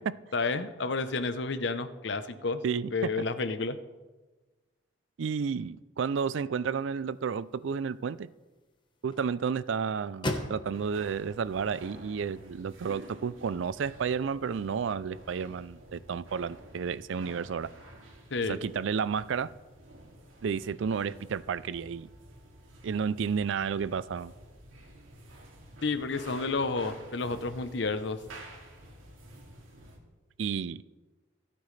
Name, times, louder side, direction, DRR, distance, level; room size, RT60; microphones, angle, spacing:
voice 1, 0.3-2.6 2.9-3.8 18.3-18.6 25.8-28.2, left 3 dB, 60° left, 0.7 m, -30 dB
voice 2, 2.6-3.1 5.2-8.3 9.0-17.7 18.5-19.5 20.4-22.1 22.8-24.3 30.4-30.8, right 6 dB, 70° right, 0.4 m, -31 dB
sound 1, 6.7-12.8, left 1 dB, 25° left, 1.1 m, -42 dB
sound 2, 10.7-30.0, right 1 dB, 85° right, 2.4 m, -51 dB
25.0 x 8.6 x 3.3 m
head